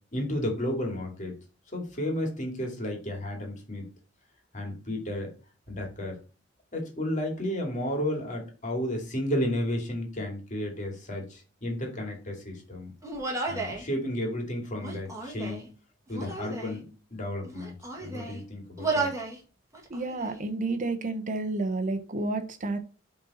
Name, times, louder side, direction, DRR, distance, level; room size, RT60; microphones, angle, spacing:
voice 1, 0.1-1.4 1.7-3.9 4.5-5.3 5.7-6.2 6.7-12.9 13.5-15.6 16.1-16.8 17.1-19.1, left 1 dB, 40° left, 1 dB, 2.4 m, -32 dB
Human voice, 13.0-13.8 14.8-15.7 16.1-16.8 17.4-18.4 18.8-19.4 19.7-20.4, right 3 dB, 15° right, 1.8 m, -33 dB
voice 2, 19.9-22.8, right 2 dB, 40° right, 9 dB, 0.8 m, -30 dB
7.6 x 4.0 x 4.2 m, 0.34 s
head